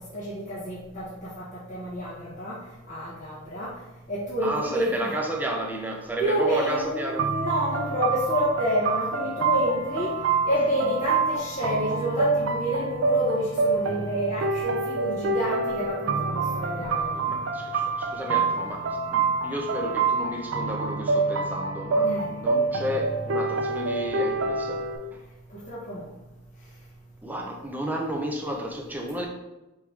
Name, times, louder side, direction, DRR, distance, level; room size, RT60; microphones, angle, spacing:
voice 1, 0.0-2.6 2.8-3.7 4.1-5.1 6.2-10.1 10.4-17.4 22.0-22.3 25.5-26.1, equal, 35° left, -9 dB, 1.1 m, -29 dB
voice 2, 4.4-7.3 17.3-24.8 25.1-25.2 27.2-29.3, right 1 dB, 10° right, 0 dB, 0.5 m, -32 dB
sound 1, 7.2-25.0, right 4 dB, 65° right, 0.5 m, -27 dB
4.6 x 3.5 x 3.2 m, 1.0 s
head